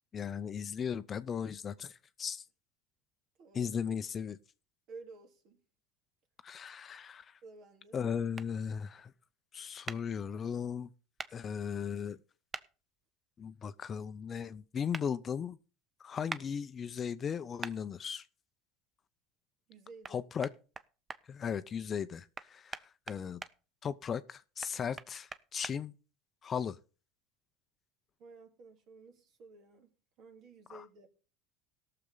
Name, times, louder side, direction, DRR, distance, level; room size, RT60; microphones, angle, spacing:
voice 1, 0.1-2.4 3.5-4.4 6.4-7.4 7.9-9.1 9.5-10.9 11.3-12.2 13.4-15.6 16.0-18.2 20.1-20.5 21.3-23.4 23.8-25.9 26.4-26.8 30.7-30.8, left 7 dB, 35° left, 0.6 m, -37 dB
voice 2, 3.4-3.9 4.9-5.6 7.4-8.0 19.7-20.2 28.2-29.9 30.2-31.1, right 3 dB, 55° right, 2.4 m, -53 dB
sound 1, 8.3-8.5 9.9-10.0 11.2-11.3 12.5-12.7 14.9-15.1 16.3-16.4 17.6-17.8 20.0-20.1 20.4-21.2 22.3-23.5 24.6-25.7, right 4 dB, 25° right, 0.7 m, -41 dB
17.5 x 6.8 x 3.9 m
supercardioid pair, 95°, 0 cm